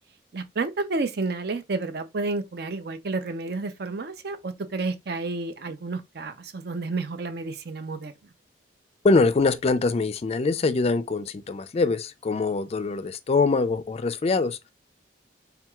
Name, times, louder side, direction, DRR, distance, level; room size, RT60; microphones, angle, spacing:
voice 1, 0.3-8.1, right 3 dB, 65° right, 0.6 m, -30 dB
voice 2, 9.0-14.6, left 3 dB, 35° left, 0.4 m, -23 dB
4.6 x 3.6 x 2.3 m
head